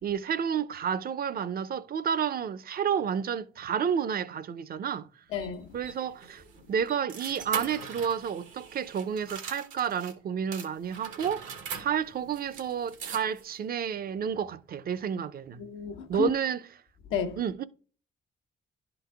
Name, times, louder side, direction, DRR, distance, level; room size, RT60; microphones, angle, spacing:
voice 1, 0.0-5.1 5.7-6.4 6.7-15.6 16.1-16.6 17.4-17.6, right 7 dB, 50° right, 0.6 m, -30 dB
voice 2, 5.3-5.7 15.6-16.3 17.1-17.4, left 7 dB, 85° left, 1.0 m, -32 dB
sound 1, 5.4-10.1 10.5-13.6, right 7 dB, 85° right, 1.2 m, -42 dB
11.0 x 4.0 x 3.4 m
cardioid pair, 90°, 20 cm